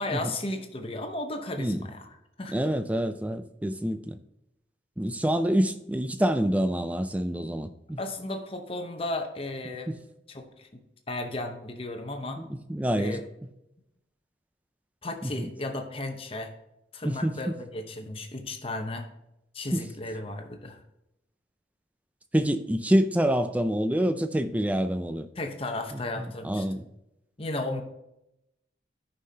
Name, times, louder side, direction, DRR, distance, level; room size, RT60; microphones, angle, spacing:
voice 1, 0.0-2.1 2.4-2.5 8.0-9.9 10.3-10.8 11.1-12.4 13.0-13.2 15.0-16.5 16.9-19.1 19.5-20.8 25.4-26.8 27.4-27.8, left 2 dB, 30° left, 0.9 m, -34 dB
voice 2, 2.5-4.2 5.0-8.0 9.9-10.0 12.4-13.2 15.2-15.5 17.0-17.4 19.7-19.8 22.3-25.3 25.9-26.8, equal, 10° right, 0.4 m, -27 dB
13.5 x 5.6 x 2.8 m
head